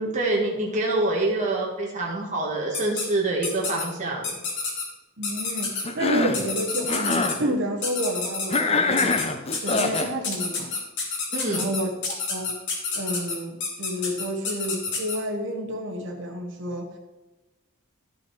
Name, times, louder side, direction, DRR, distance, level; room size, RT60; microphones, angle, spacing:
voice 1, 0.0-4.4 11.3-11.6, right 2 dB, 35° right, -2 dB, 1.4 m, -26 dB
sound 1, 2.7-3.0 3.4-3.8 4.2-4.8 5.2-5.8 6.3-7.3 7.8-8.6 9.0-9.2 9.5-15.2, left 4 dB, 55° left, 2.1 m, -29 dB
voice 2, 5.2-9.2 9.6-10.8 11.5-12.5 12.9-16.9, equal, 55° right, 1 dB, 1.1 m, -30 dB
Cough, 5.9-6.5 6.8-7.4 8.5-10.1, left 3 dB, 30° left, 0.7 m, -24 dB
12.0 x 6.1 x 4.6 m, 1.1 s
head